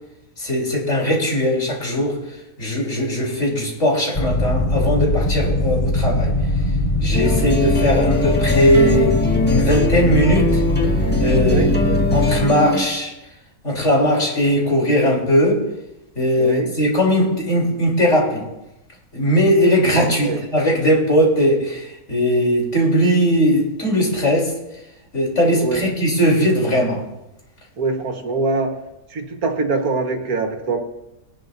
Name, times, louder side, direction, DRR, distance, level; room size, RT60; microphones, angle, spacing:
voice 1, 0.4-2.2 2.6-6.3 7.0-9.2 9.5-10.6 11.2-13.1 13.6-15.6 16.2-18.4 19.1-24.6 25.1-27.0, equal, 55° left, -2 dB, 3.9 m, -19 dB
sound 1, 4.1-12.4, left 1 dB, 25° left, 0.9 m, -20 dB
sound 2, 7.1-12.9, left 2 dB, 5° left, 1.4 m, -23 dB
voice 2, 16.4-16.7 20.2-20.4 25.6-25.8 27.8-28.7 29.1-30.8, right 3 dB, 75° right, 4 dB, 1.9 m, -23 dB
20.5 x 11.5 x 2.7 m, 0.92 s
omnidirectional pair, 1.6 m